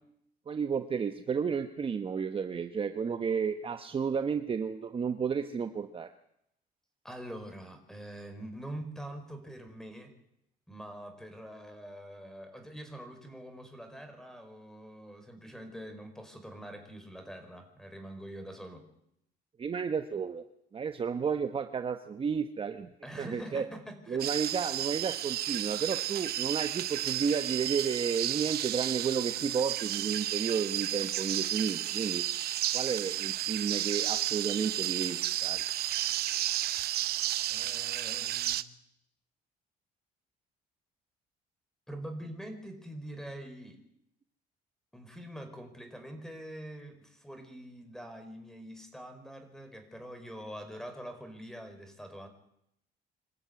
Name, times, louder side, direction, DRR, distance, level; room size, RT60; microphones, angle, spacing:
voice 1, 0.5-6.1 19.6-20.4 20.7-22.9 23.2-23.6 24.1-32.2 32.7-35.6, right 6 dB, 30° right, 7 dB, 1.2 m, -32 dB
voice 2, 7.0-10.1 10.7-18.8 23.0-24.2 37.5-38.6 41.9-43.8 44.9-52.3, right 1 dB, 5° left, 7 dB, 4.8 m, -44 dB
sound 1, 24.2-38.6, right 13 dB, 65° right, 0.9 m, -32 dB
25.5 x 13.5 x 9.6 m, 0.76 s
cardioid pair, 110°, 17 cm